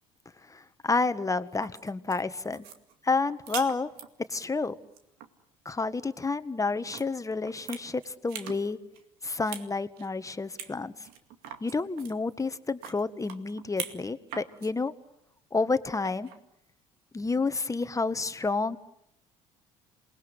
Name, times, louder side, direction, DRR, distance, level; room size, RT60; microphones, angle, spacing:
voice 1, 0.5-2.7 3.0-3.9 4.3-4.8 5.7-8.8 9.2-10.9 11.6-14.9 15.5-16.3 17.1-18.8, left 3 dB, 20° left, 12 dB, 1.7 m, -30 dB
sound 1, 1.5-4.4 4.8-5.3 6.9-7.1 7.4-8.6 8.9-9.7 10.0-10.1 10.6-10.7 11.0-14.0 14.3-14.7 16.0-16.4, right 8 dB, 70° right, 2.3 m, -42 dB
28.0 x 20.0 x 9.9 m, 0.77 s
hypercardioid pair, 60°, 16 cm